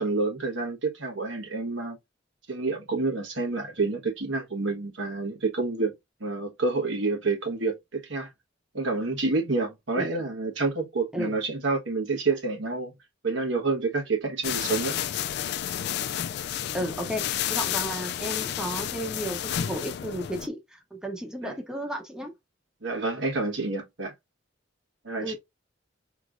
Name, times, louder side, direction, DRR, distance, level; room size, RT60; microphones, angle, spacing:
voice 1, 0.0-2.0 2.5-5.9 6.2-8.3 8.7-12.9 13.2-15.0 21.4-21.5 22.8-24.1 25.0-25.3, right 3 dB, 75° right, 1.2 m, -28 dB
sound 1, 14.4-20.5, left 10 dB, 60° left, 0.3 m, -31 dB
voice 2, 16.7-22.3 25.2-25.3, equal, 5° right, 0.8 m, -33 dB
4.7 x 3.0 x 2.5 m
head